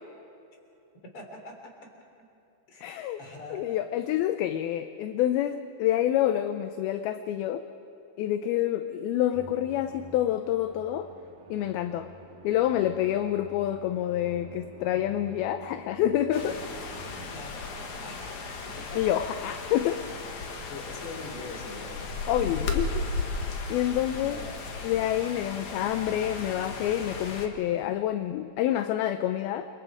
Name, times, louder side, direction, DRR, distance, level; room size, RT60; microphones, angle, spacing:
voice 1, 1.1-1.7 2.7-3.6 17.3-18.3 18.8-19.0 20.7-22.0 22.4-22.7 24.1-24.6, left 2 dB, 35° left, 2 dB, 3.8 m, -43 dB
voice 2, 2.8-3.2 3.5-7.6 8.2-11.1 11.5-12.1 12.4-16.6 19.0-20.0 22.3-22.9 23.4-24.4 24.8-29.7, left 12 dB, 80° left, 9 dB, 2.5 m, -27 dB
Musical instrument, 9.3-17.9, right 4 dB, 65° right, 2.9 m, -49 dB
sound 1, 16.3-27.5, left 3 dB, 55° left, 2.6 m, -35 dB
29.5 x 24.5 x 4.9 m, 2.8 s
omnidirectional pair, 4.6 m